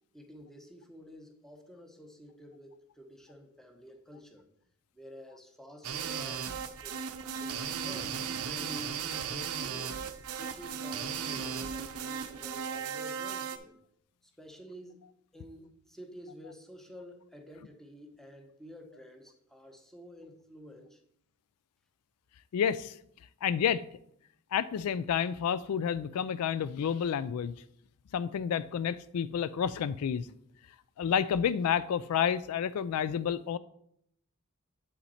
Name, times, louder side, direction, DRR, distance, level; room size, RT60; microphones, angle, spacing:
voice 1, 0.1-4.5 4.9-6.5 6.8-7.0 7.3-10.0 10.4-13.8 14.2-15.1 15.3-21.0, equal, ahead, 4 dB, 0.9 m, -50 dB
sound 1, 5.8-13.6, right 7 dB, 90° right, 0.6 m, -36 dB
voice 2, 22.5-22.9 23.4-23.8 24.5-27.5 28.1-30.3 31.0-33.6, left 8 dB, 90° left, 16 dB, 0.3 m, -30 dB
7.7 x 5.8 x 4.2 m, 0.72 s
head